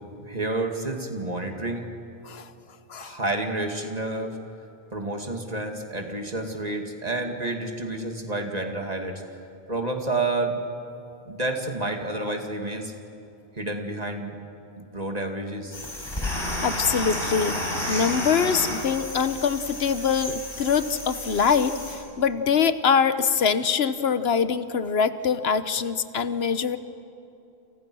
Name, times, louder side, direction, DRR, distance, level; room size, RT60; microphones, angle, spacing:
voice 1, 0.2-1.8 3.0-4.4 4.9-9.2 9.7-10.5 11.2-12.9 13.5-14.4 14.8-15.8, right 2 dB, 40° right, 3 dB, 2.5 m, -29 dB
sound 1, 15.7-21.9, left 1 dB, 25° left, 6.7 m, -31 dB
voice 2, 16.3-26.8, left 6 dB, 85° left, 12 dB, 1.2 m, -24 dB
29.5 x 28.5 x 6.2 m, 2.8 s
omnidirectional pair, 1.0 m